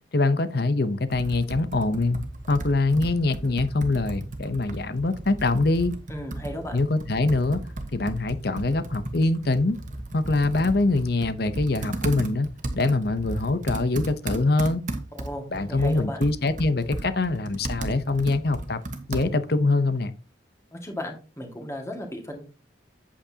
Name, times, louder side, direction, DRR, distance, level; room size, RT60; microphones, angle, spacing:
voice 1, 0.1-2.2 2.5-5.9 6.7-7.6 7.9-9.8 10.1-12.5 12.7-14.8 15.5-18.8 19.1-20.1, left 2 dB, 55° left, 0.8 m, -24 dB
Computer keyboard, 1.1-19.6, right 1 dB, 40° right, 1.2 m, -35 dB
voice 2, 6.1-6.8 15.1-16.2 20.7-22.4, left 1 dB, 15° left, 1.9 m, -35 dB
8.5 x 8.4 x 2.8 m
head